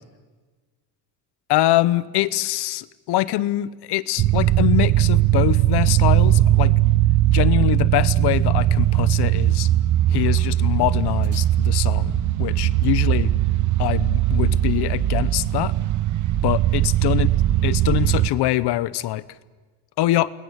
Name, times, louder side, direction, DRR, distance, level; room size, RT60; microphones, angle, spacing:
voice 1, 1.5-6.7 7.3-9.7 10.1-13.3 13.8-15.7 16.4-17.3 17.6-19.2 20.0-20.3, left 15 dB, 80° left, 17 dB, 1.1 m, -23 dB
sound 1, 4.2-18.3, right 14 dB, 50° right, 0.8 m, -19 dB
29.5 x 20.5 x 8.2 m, 1.3 s
cardioid pair, 150°, 39 cm